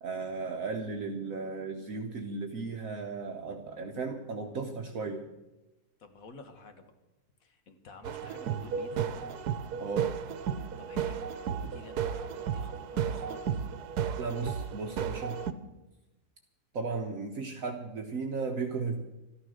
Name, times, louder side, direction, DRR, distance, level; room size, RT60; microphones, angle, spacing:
voice 1, 0.0-5.3 9.8-10.1 14.2-15.4 16.7-19.0, right 4 dB, 60° right, 3 dB, 1.4 m, -35 dB
voice 2, 6.0-6.9 7.4-9.2 10.8-11.3 11.6-13.7, left 3 dB, 60° left, 7 dB, 1.9 m, -50 dB
sound 1, 8.0-15.5, right 8 dB, 90° right, 1.4 m, -33 dB
13.0 x 13.0 x 6.5 m, 1.0 s
omnidirectional pair, 1.6 m